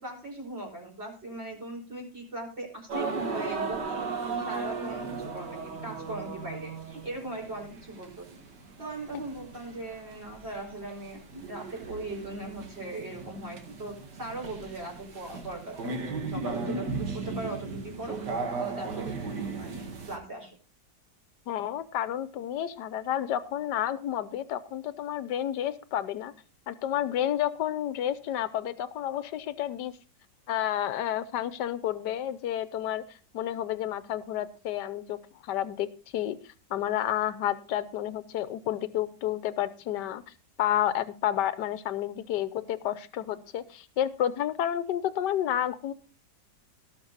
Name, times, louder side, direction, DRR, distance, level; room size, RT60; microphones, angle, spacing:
voice 1, 0.0-8.3 8.8-11.2 11.5-18.2 18.5-19.2 19.5-20.6, right 2 dB, 35° right, 0 dB, 5.4 m, -39 dB
sound 1, 2.9-20.2, right 4 dB, 65° right, 2.3 m, -36 dB
voice 2, 21.5-26.3 26.7-29.9 30.5-33.0 33.3-36.4 36.7-40.2 40.6-45.9, left 11 dB, 75° left, 14 dB, 1.4 m, -30 dB
18.5 x 6.3 x 4.0 m, 0.37 s
omnidirectional pair, 1.9 m